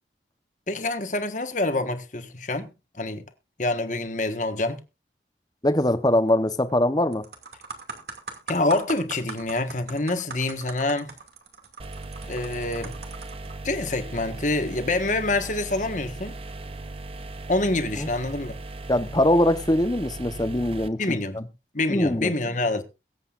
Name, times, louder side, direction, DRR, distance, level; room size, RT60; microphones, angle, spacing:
voice 1, 0.7-2.7 3.0-3.2 3.6-4.8 8.5-11.1 12.3-12.9 13.6-16.4 17.5-18.5 21.0-21.4 21.7-22.8, left 2 dB, 45° left, 1.4 m, -26 dB
voice 2, 5.6-7.2 18.0-18.1 18.9-21.4 21.9-22.3, left 1 dB, 20° left, 1.0 m, -22 dB
sound 1, 6.5-6.8 7.1-13.5 14.2-14.4, right 4 dB, 65° right, 2.5 m, -40 dB
sound 2, 11.8-20.9, right 2 dB, 30° right, 0.7 m, -38 dB
22.5 x 8.1 x 2.5 m
head